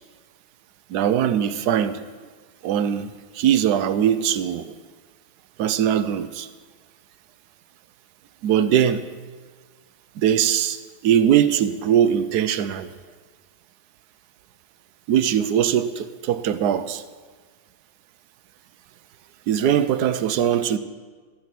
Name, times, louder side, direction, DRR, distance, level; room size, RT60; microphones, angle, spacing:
voice 1, 0.9-2.0 2.6-4.7 5.6-6.5 8.4-9.0 10.2-12.9 15.1-17.0 19.5-20.8, right 9 dB, 85° right, 1.2 m, -21 dB
14.0 x 10.5 x 6.0 m
omnidirectional pair, 1.7 m